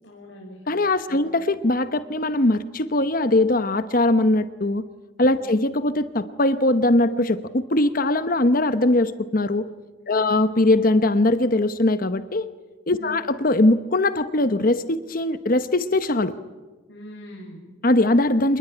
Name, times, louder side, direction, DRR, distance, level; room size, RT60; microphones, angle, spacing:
voice 1, 0.0-0.6 1.0-1.3 5.3-5.5 10.0-10.3 13.0-13.2 16.9-17.8, equal, 60° left, -3 dB, 6.7 m, -42 dB
voice 2, 0.7-4.8 5.2-9.7 10.1-12.5 12.9-16.3 17.8-18.6, left 2 dB, 45° left, 12 dB, 1.0 m, -21 dB
27.0 x 21.0 x 10.0 m, 1.3 s
head